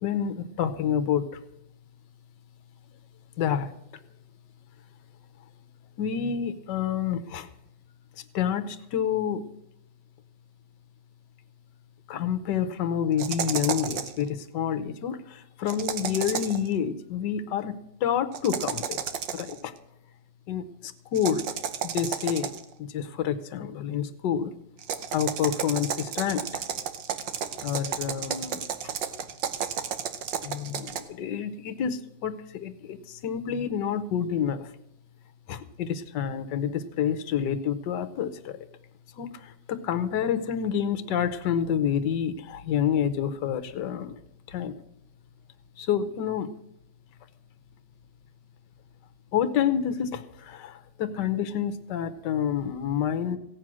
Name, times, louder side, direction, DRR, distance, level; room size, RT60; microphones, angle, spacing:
voice 1, 0.0-1.4 3.4-3.7 6.0-7.5 8.3-9.5 12.1-19.7 20.5-21.4 21.8-22.5 22.8-24.5 25.1-26.6 27.6-28.9 30.4-34.7 35.5-38.7 39.1-44.1 44.5-44.7 45.8-46.5 49.3-53.4, left 8 dB, 75° left, 12 dB, 1.5 m, -28 dB
sound 1, 13.2-14.2 15.7-16.7 18.3-19.6 21.1-22.7 24.8-31.0, right 8 dB, 80° right, 1.6 m, -32 dB
16.0 x 9.1 x 6.2 m, 0.83 s
omnidirectional pair, 1.9 m